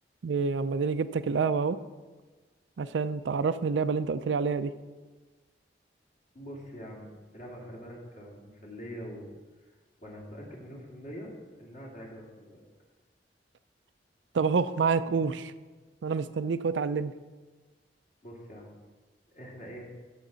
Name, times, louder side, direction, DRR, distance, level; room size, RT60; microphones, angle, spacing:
voice 1, 0.2-1.8 2.8-4.7 14.3-15.5 16.0-17.1, right 5 dB, 85° right, 13 dB, 0.4 m, -27 dB
voice 2, 6.3-9.3 9.7-12.7 18.2-18.8 19.3-19.9, equal, 50° left, -3 dB, 2.4 m, -44 dB
13.5 x 5.8 x 4.0 m, 1.3 s
head